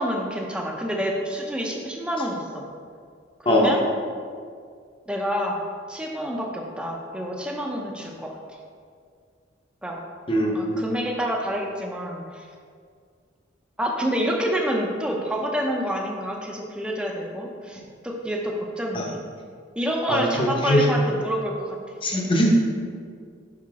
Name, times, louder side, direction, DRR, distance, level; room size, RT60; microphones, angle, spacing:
voice 1, 0.0-2.7 3.4-3.8 5.1-5.6 5.9-8.3 9.8-10.0 10.5-12.5 13.8-19.2 19.8-21.8, equal, 5° right, 0 dB, 0.6 m, -28 dB
voice 2, 10.3-10.8 18.9-19.1 20.1-20.9 22.0-22.5, equal, 30° left, -1 dB, 0.9 m, -21 dB
5.8 x 5.6 x 3.6 m, 2.1 s
head